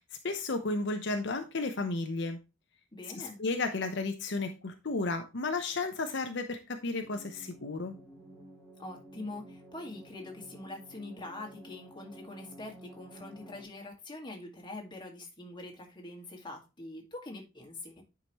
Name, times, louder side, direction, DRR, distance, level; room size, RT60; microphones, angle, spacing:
voice 1, 0.2-2.4 3.2-7.9, left 3 dB, 65° left, 0.8 m, -33 dB
voice 2, 2.9-3.4 8.8-18.0, left 2 dB, 25° left, 1.9 m, -44 dB
sound 1, 7.0-13.6, right 1 dB, 5° right, 4.7 m, -52 dB
10.0 x 5.1 x 3.0 m
head